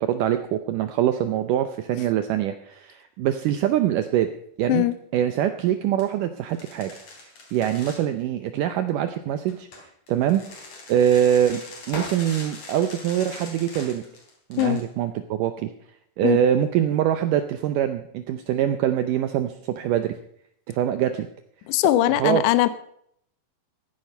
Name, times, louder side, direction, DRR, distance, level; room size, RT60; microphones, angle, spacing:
voice 1, 0.0-4.3 4.6-4.9 5.1-6.9 7.5-9.7 10.1-10.4 10.9-11.6 11.9-14.0 14.5-15.7 16.2-20.1 20.7-21.3 22.2-22.4, right 10 dB, 75° right, 9 dB, 2.0 m, -23 dB
sound 1, 5.5-5.6 6.0-6.1 6.5-8.0 9.5-14.8, left 2 dB, 50° left, 4.7 m, -40 dB
voice 2, 21.7-22.7, left 14 dB, 85° left, 13 dB, 1.8 m, -20 dB
15.5 x 10.0 x 5.4 m, 0.69 s
omnidirectional pair, 4.4 m